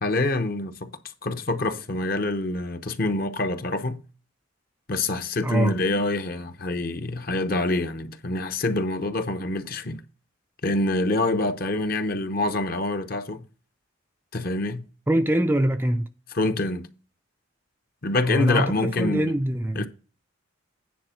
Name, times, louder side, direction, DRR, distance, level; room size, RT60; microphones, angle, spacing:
voice 1, 0.0-0.9 1.2-4.0 4.9-10.0 10.6-13.4 14.3-14.9 16.3-16.9 18.0-19.3 19.7-19.9, left 2 dB, 45° left, 0.8 m, -26 dB
voice 2, 5.4-5.7 15.1-16.1 18.2-19.9, right 1 dB, 10° right, 0.4 m, -23 dB
9.6 x 4.2 x 5.7 m
head